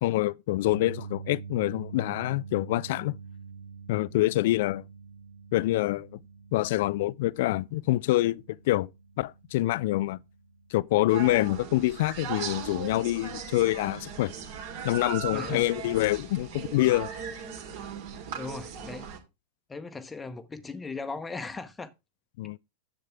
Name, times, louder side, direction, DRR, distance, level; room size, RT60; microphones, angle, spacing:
voice 1, 0.0-3.2 3.9-4.9 5.5-6.2 6.5-8.9 9.2-10.2 10.7-14.3 14.8-17.1 22.4-22.6, left 17 dB, 50° left, 0.4 m, -26 dB
sound 1, 0.7-12.9 13.3-13.5 15.7-15.8, right 5 dB, 65° right, 1.7 m, -46 dB
sound 2, 11.1-19.2, right 7 dB, 50° right, 2.4 m, -38 dB
voice 2, 15.3-15.7 18.3-19.2 19.7-21.9, left 4 dB, 15° left, 1.0 m, -38 dB
10.5 x 7.9 x 3.4 m
figure-of-eight pair, 90°, 0 cm